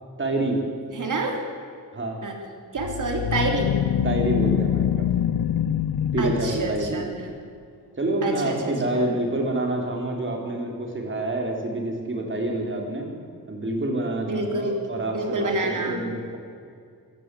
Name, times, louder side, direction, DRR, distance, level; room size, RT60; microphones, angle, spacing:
voice 1, 0.2-0.6 1.9-2.2 4.0-5.1 6.1-7.0 8.0-13.1 13.5-16.4, right 2 dB, 30° right, 1 dB, 3.8 m, -27 dB
voice 2, 0.9-1.4 2.2-2.4 2.7-3.8 6.2-7.3 8.2-9.0 14.3-14.8 15.1-16.0, right 2 dB, 55° right, 2 dB, 3.8 m, -28 dB
sound 1, 2.8-7.2, left 10 dB, 85° left, 0.6 m, -25 dB
24.0 x 14.5 x 8.5 m, 2.3 s
wide cardioid pair, 175°, 36 cm